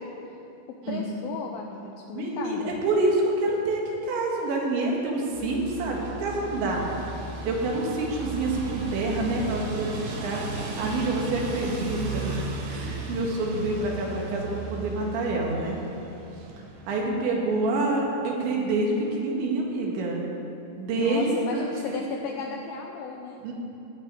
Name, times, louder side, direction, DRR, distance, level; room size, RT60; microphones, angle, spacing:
voice 1, 0.9-2.7 20.9-23.4, left 5 dB, 80° left, 2 dB, 2.1 m, -35 dB
voice 2, 2.1-7.1 7.4-10.4 10.8-12.4 12.7-15.8 16.9-20.2 20.8-22.3 23.4-23.5, right 2 dB, 85° right, -1 dB, 4.2 m, -27 dB
sound 1, 5.3-17.1, right 4 dB, 60° right, 2.0 m, -35 dB
16.0 x 5.6 x 9.6 m, 2.9 s
omnidirectional pair, 5.1 m